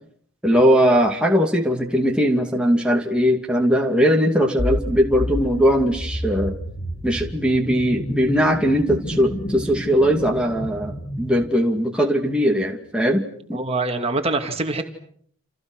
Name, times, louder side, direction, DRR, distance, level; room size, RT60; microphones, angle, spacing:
voice 1, 0.4-6.6 7.0-13.2 13.5-13.6, equal, 5° right, 0 dB, 2.5 m, -19 dB
sound 1, 4.6-11.5, equal, 35° left, 2.0 m, -30 dB
voice 2, 13.5-14.8, right 3 dB, 25° right, 4 dB, 2.4 m, -24 dB
29.5 x 29.0 x 6.3 m, 0.64 s
head